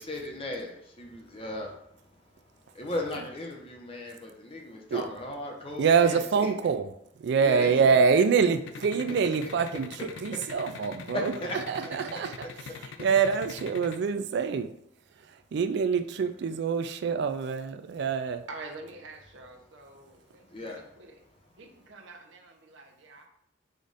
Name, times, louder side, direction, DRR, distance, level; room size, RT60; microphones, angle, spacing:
voice 1, 0.0-2.2 2.5-6.5 7.4-7.7 8.1-8.2 10.3-10.8 11.1-11.6 12.1-12.5 20.5-20.8, left 1 dB, 30° left, 0 dB, 0.8 m, -37 dB
voice 2, 5.8-6.9 7.2-11.3 11.7-14.7 15.5-18.5, right 6 dB, 60° right, 10 dB, 0.3 m, -25 dB
sound 1, 8.7-14.0, left 5 dB, 75° left, 0.4 m, -42 dB
voice 3, 18.5-21.2 21.6-23.3, right 3 dB, 75° right, 2 dB, 0.8 m, -46 dB
5.0 x 2.5 x 4.0 m, 0.72 s
head